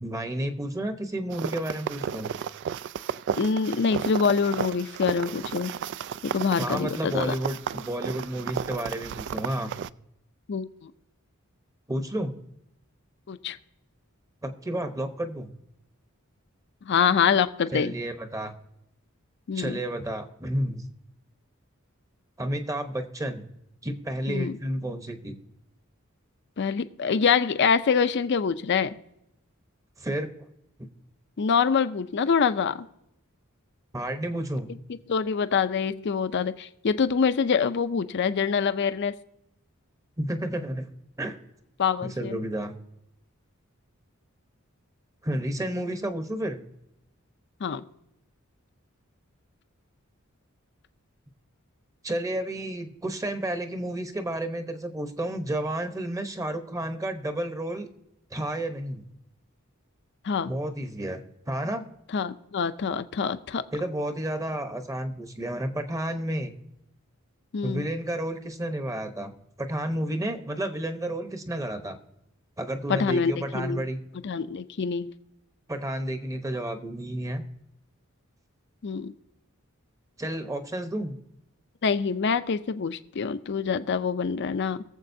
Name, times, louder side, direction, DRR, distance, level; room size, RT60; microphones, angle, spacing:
voice 1, 0.0-2.3 6.6-9.7 11.9-12.3 14.4-15.5 17.7-18.5 19.5-20.9 22.4-23.4 23.8-25.4 30.0-30.3 33.9-34.7 40.2-40.9 41.2-41.4 42.0-42.8 45.2-46.6 52.0-57.9 58.3-59.0 60.4-61.2 61.5-61.8 63.7-66.5 67.6-69.3 69.6-72.0 72.6-74.0 75.7-77.4 80.2-81.2, right 1 dB, 15° right, 7 dB, 0.9 m, -31 dB
sound 1, 1.3-9.9, right 8 dB, 55° right, 0.3 m, -33 dB
voice 2, 3.4-5.7 6.3-7.3 10.5-10.9 13.3-13.6 16.9-17.9 19.5-19.8 24.3-24.6 26.6-29.0 31.4-32.9 35.1-39.1 41.8-42.4 47.6-47.8 60.2-60.5 62.1-63.6 67.5-67.9 72.9-73.8 74.2-75.1 78.8-79.1 81.8-84.8, left 6 dB, 55° left, 12 dB, 0.5 m, -25 dB
22.0 x 7.4 x 2.7 m, 0.82 s
head